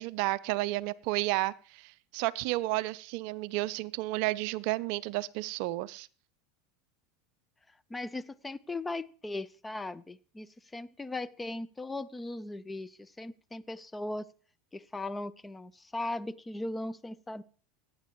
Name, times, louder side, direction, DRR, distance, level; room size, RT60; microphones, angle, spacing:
voice 1, 0.0-6.1, right 19 dB, 60° right, 19 dB, 0.4 m, -32 dB
voice 2, 7.9-14.3 14.7-17.4, left 2 dB, 15° left, 16 dB, 0.6 m, -38 dB
17.0 x 9.3 x 3.0 m, 0.40 s
hypercardioid pair, 90°, 0 cm